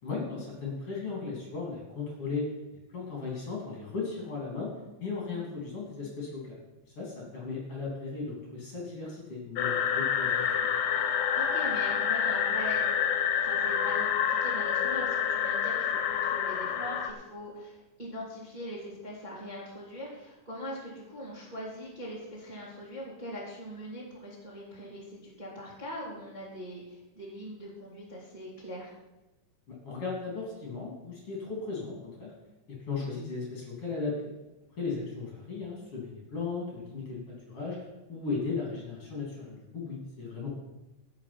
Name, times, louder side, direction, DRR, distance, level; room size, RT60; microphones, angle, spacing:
voice 1, 0.0-2.5 2.9-4.7 5.0-6.6 7.0-10.7 29.7-32.3 32.7-34.2 34.8-37.8 38.1-40.5, left 4 dB, 45° left, -3 dB, 3.9 m, -36 dB
sound 1, 9.6-17.1, left 8 dB, 80° left, 2.4 m, -28 dB
voice 2, 11.4-12.8 13.3-28.9, equal, 15° right, -7 dB, 2.8 m, -41 dB
16.0 x 6.0 x 6.1 m, 0.99 s
omnidirectional pair, 3.8 m